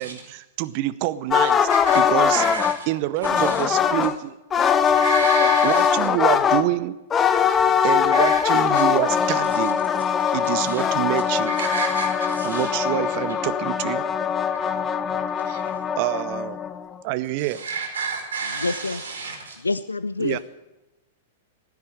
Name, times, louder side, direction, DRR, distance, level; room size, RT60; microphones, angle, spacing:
voice 1, 0.0-1.7 1.9-2.4 2.9-4.3 5.6-7.0 7.8-9.8 10.3-11.5 12.4-14.0 15.5-15.6 16.0-16.6 17.0-17.6 20.2-20.4, right 15 dB, 45° right, 0.7 m, -26 dB
sound 1, 1.3-2.8 3.2-4.1 4.5-6.6 7.1-16.9, left 7 dB, 20° left, 0.8 m, -21 dB
voice 2, 1.7-2.0 2.3-2.7 3.2-3.6 4.9-6.0 8.1-8.8 10.4-10.9 11.5-13.0 15.4-15.8 17.4-19.5, right 5 dB, 70° right, 4.8 m, -31 dB
voice 3, 18.6-19.0 19.6-20.4, left 3 dB, 85° left, 0.4 m, -26 dB
15.5 x 9.6 x 8.5 m
figure-of-eight pair, 100°, 0 cm